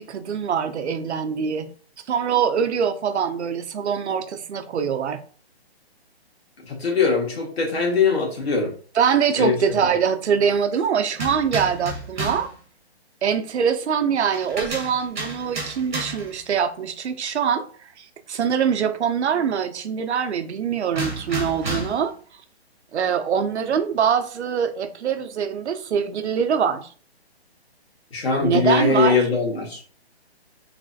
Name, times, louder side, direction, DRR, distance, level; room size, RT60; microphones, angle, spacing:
voice 1, 0.0-1.7 2.1-5.2 8.9-12.5 13.2-17.7 18.0-22.1 22.9-26.9 28.4-29.2, right 7 dB, 90° right, 0.6 m, -23 dB
voice 2, 6.7-8.7 9.4-9.9 28.1-29.8, left 4 dB, 70° left, 1.6 m, -21 dB
sound 1, 11.2-12.5 14.3-16.4 20.9-22.1, right 2 dB, 45° right, 1.1 m, -31 dB
3.3 x 3.1 x 2.6 m
hypercardioid pair, 180°, 32 cm